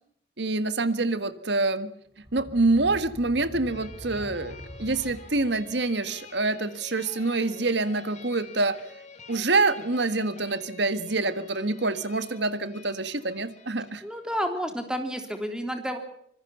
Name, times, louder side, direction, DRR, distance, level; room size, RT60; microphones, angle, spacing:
voice 1, 0.4-1.9 2.3-8.8 9.3-14.0, right 3 dB, 65° right, 13 dB, 1.7 m, -26 dB
sound 1, 2.1-5.9, equal, 20° right, 7.6 m, -44 dB
sound 2, 3.7-14.4, left 4 dB, 40° left, 4.1 m, -49 dB
voice 2, 14.0-16.0, equal, 5° right, 6 dB, 3.4 m, -30 dB
25.5 x 21.5 x 5.6 m, 0.70 s
head